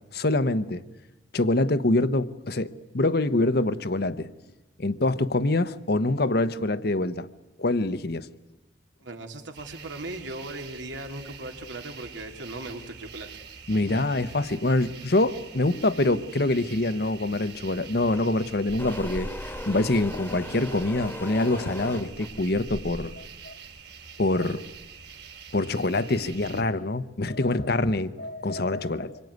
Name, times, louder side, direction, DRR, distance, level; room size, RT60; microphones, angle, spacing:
voice 1, 0.1-0.8 1.3-4.3 4.8-7.3 7.6-8.3 13.7-23.5 24.2-24.6 25.5-29.2, left 2 dB, 55° left, 1.0 m, -25 dB
voice 2, 9.0-13.3, right 2 dB, 85° right, 2.8 m, -38 dB
sound 1, 9.5-26.6, right 4 dB, 60° right, 2.6 m, -44 dB
sound 2, 18.1-18.3 18.8-22.4, left 1 dB, 10° left, 1.4 m, -38 dB
26.0 x 23.5 x 9.5 m
head